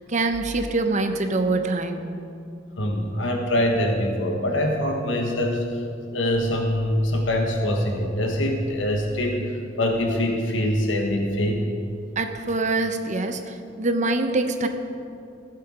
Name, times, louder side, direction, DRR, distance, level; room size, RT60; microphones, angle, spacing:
voice 1, 0.1-2.2 12.2-14.7, right 2 dB, 40° right, 7 dB, 0.8 m, -24 dB
voice 2, 2.8-5.8 6.1-11.7, left 1 dB, 90° left, 2 dB, 1.3 m, -24 dB
16.0 x 7.7 x 4.9 m, 2.5 s
head